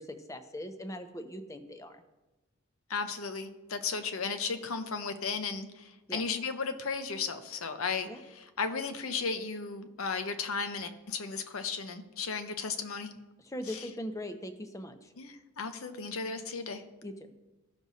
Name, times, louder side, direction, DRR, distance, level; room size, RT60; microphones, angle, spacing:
voice 1, 0.0-2.0 6.1-6.2 8.1-8.2 13.4-15.1 17.0-17.1, equal, 15° left, 7 dB, 0.5 m, -40 dB
voice 2, 2.9-13.1 13.6-13.9 15.2-16.8, left 5 dB, 75° left, 8 dB, 0.8 m, -35 dB
15.0 x 6.1 x 2.7 m, 1.1 s
head